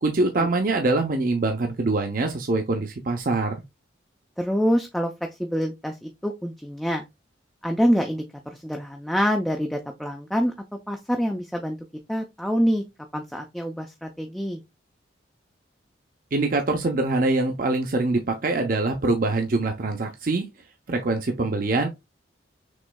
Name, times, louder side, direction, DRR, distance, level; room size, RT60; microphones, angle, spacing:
voice 1, 0.0-3.5 16.3-20.5 20.9-21.9, right 2 dB, 45° right, 0.6 m, -24 dB
voice 2, 4.4-5.1 5.4-7.0 7.6-10.5 10.9-11.8 12.1-12.8 13.1-14.6, equal, ahead, 0.4 m, -26 dB
6.1 x 3.1 x 2.2 m
head